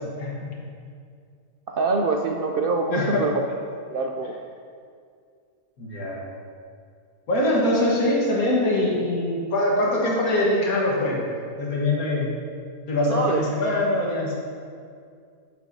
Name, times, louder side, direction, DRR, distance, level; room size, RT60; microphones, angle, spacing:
voice 1, 0.2-0.5 2.9-3.3 5.8-6.2 7.3-11.3 11.6-12.3 12.9-14.4, left 1 dB, 80° left, -3 dB, 1.8 m, -23 dB
voice 2, 1.7-3.3 3.9-4.3 13.1-13.4, right 3 dB, 70° right, 3 dB, 0.5 m, -24 dB
10.0 x 9.4 x 2.7 m, 2.2 s
omnidirectional pair, 1.5 m